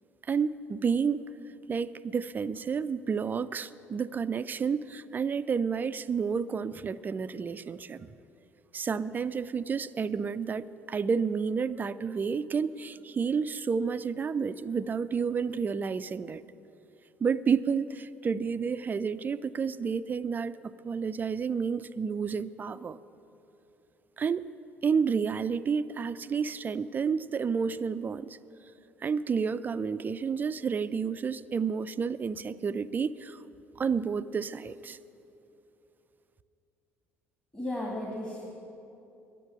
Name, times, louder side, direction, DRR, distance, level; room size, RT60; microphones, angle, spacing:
voice 1, 0.3-1.2 1.7-8.1 8.7-16.4 17.2-23.0 24.2-24.5 24.8-28.4 29.0-33.4 33.8-35.0, right 6 dB, 25° right, 0.4 m, -30 dB
voice 2, 37.5-38.4, left 1 dB, 15° left, 2.2 m, -34 dB
10.5 x 9.9 x 9.1 m
figure-of-eight pair, 55°, 7 cm